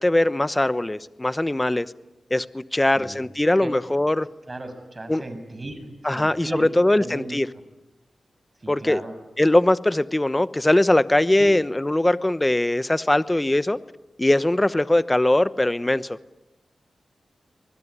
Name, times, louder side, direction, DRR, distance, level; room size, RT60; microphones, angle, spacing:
voice 1, 0.0-1.9 2.3-4.3 5.1-5.2 6.0-7.5 8.7-9.0 9.4-13.8 14.2-16.2, left 1 dB, 15° left, 15 dB, 1.0 m, -21 dB
voice 2, 4.5-6.7 7.0-7.4 8.6-9.1 11.4-11.6, right 2 dB, 30° right, 8 dB, 6.7 m, -36 dB
25.0 x 20.5 x 10.0 m, 1.0 s
cardioid pair, 70°, 0 cm